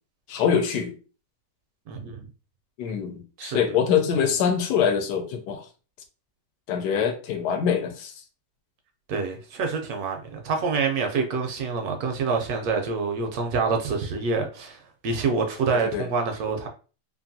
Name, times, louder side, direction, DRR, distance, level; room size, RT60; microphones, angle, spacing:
voice 1, 0.3-0.9 2.8-5.7 6.7-8.1 15.7-16.1, left 7 dB, 75° left, 1.1 m, -24 dB
voice 2, 1.9-2.2 3.4-3.6 9.1-16.7, right 4 dB, 70° right, 1.0 m, -27 dB
2.9 x 2.5 x 2.6 m
omnidirectional pair, 1.8 m